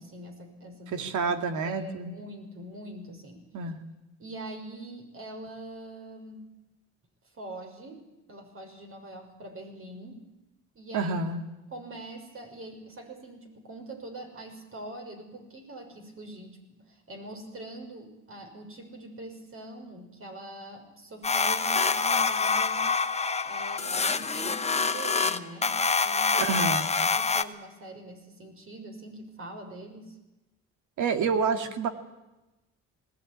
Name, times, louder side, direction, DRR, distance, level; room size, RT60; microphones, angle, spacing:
voice 1, 0.0-1.1 1.6-3.4 4.2-6.4 7.3-8.0 8.3-10.2 10.7-11.1 11.7-22.9 23.4-30.2, right 1 dB, 45° right, 4 dB, 6.1 m, -43 dB
voice 2, 0.9-2.1 3.5-3.8 10.9-11.4 26.4-26.9 31.0-31.9, right 4 dB, 80° right, 8 dB, 2.3 m, -28 dB
sound 1, 21.2-27.4, left 4 dB, 20° left, 1.0 m, -26 dB
19.5 x 17.0 x 9.9 m, 1.0 s
cardioid pair, 90°, 30 cm